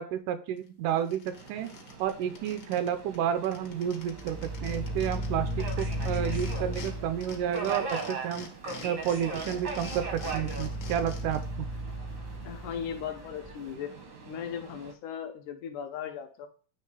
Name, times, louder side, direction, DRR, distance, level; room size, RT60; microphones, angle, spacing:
voice 1, 0.0-1.7 2.0-8.5 8.8-11.7, right 9 dB, 80° right, 9 dB, 2.1 m, -31 dB
sound 1, 0.6-0.7 1.0-2.9 3.1-3.2 3.4-6.9 7.2-11.4, left 4 dB, 60° left, 1.3 m, -45 dB
Subway metro underground, 1.3-14.9, right 4 dB, 60° right, 1.1 m, -41 dB
sound 2, 4.1-7.8 9.1-13.5, equal, 30° left, 0.4 m, -36 dB
voice 2, 12.4-13.9 14.2-16.5, left 8 dB, 75° left, 5 dB, 2.3 m, -37 dB
9.2 x 3.2 x 4.8 m, 0.39 s
omnidirectional pair, 3.8 m